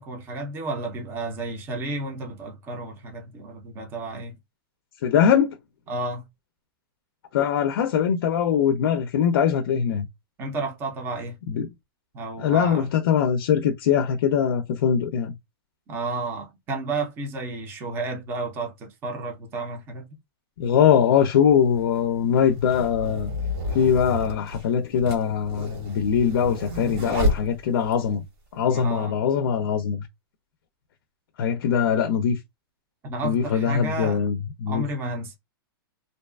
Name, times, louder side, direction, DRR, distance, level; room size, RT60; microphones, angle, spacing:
voice 1, 0.0-4.3 5.9-6.2 10.4-11.4 12.1-12.9 15.9-20.1 28.7-29.2 33.0-34.2 34.7-35.4, right 2 dB, 15° right, 0.5 m, -32 dB
voice 2, 5.0-5.6 7.3-10.1 11.5-11.7 12.4-15.3 20.6-23.3 23.7-28.2 28.5-30.0 31.4-32.4 33.2-34.8, left 8 dB, 60° left, 0.4 m, -22 dB
sound 1, 20.6-20.7 21.7-28.1, left 1 dB, 65° right, 1.4 m, -30 dB
2.5 x 2.3 x 2.3 m
hypercardioid pair, 160°, 13 cm